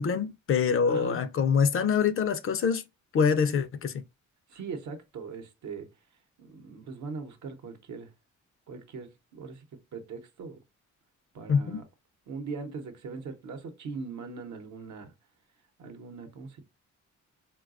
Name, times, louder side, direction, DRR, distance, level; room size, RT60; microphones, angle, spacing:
voice 1, 0.0-2.8 3.1-4.0 11.5-11.8, left 6 dB, 45° left, 0.4 m, -25 dB
voice 2, 0.8-1.2 4.5-5.9 6.4-8.1 8.7-9.6 9.9-10.6 11.3-11.8 12.3-15.1 15.8-16.6, right 4 dB, 70° right, 0.8 m, -40 dB
3.9 x 2.2 x 2.4 m
cardioid pair, 90°, 30 cm